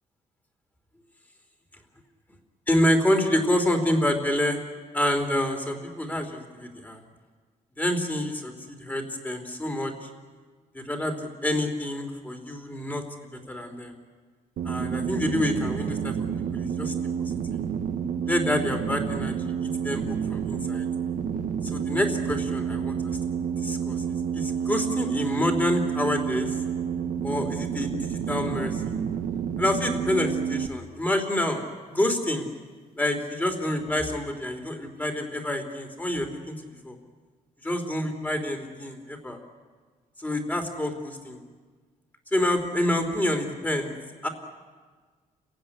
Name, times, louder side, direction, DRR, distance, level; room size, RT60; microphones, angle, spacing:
voice 1, 2.7-4.6 4.9-7.0 7.8-10.1 10.7-13.0 13.5-14.0 14.6-16.2 16.5-16.9 17.2-17.6 18.2-19.5 19.8-20.9 21.6-23.2 23.6-24.0 24.3-26.6 27.2-29.0 29.6-32.5 33.0-36.5 36.8-37.0 37.6-39.4 40.2-41.4 42.3-43.9 44.2-44.3, left 1 dB, 10° left, 5 dB, 3.2 m, -27 dB
sound 1, 14.6-30.7, right 7 dB, 75° right, 1.3 m, -29 dB
29.5 x 16.0 x 9.9 m, 1.5 s
cardioid pair, 150°, 15 cm